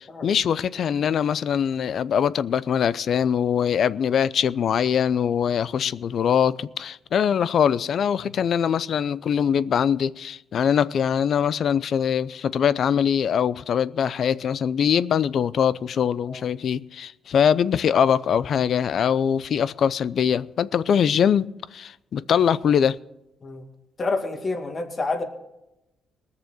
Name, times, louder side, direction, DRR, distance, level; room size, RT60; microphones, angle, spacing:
voice 1, 0.0-23.0, left 8 dB, 60° left, 0.5 m, -22 dB
voice 2, 24.0-25.2, left 3 dB, 35° left, 2.3 m, -28 dB
19.5 x 6.9 x 6.4 m
cardioid pair, 90°, 0 cm